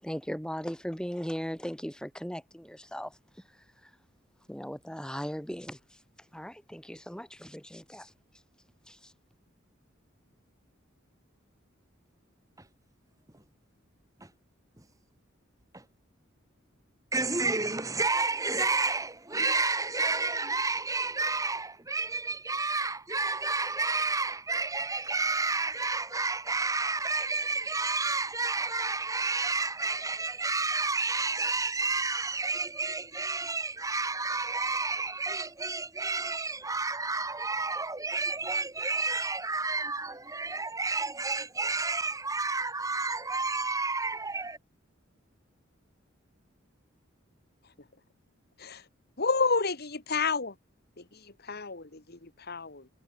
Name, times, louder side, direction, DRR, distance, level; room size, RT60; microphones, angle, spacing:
voice 1, 0.0-3.2 3.8-3.9 4.5-5.8 6.3-8.1 8.9-9.1, equal, 5° left, 5.6 m, -38 dB
voice 2, 17.1-44.6, right 3 dB, 15° right, 2.5 m, -30 dB
voice 3, 49.2-50.6 51.0-52.9, left 4 dB, 50° left, 2.3 m, -31 dB
head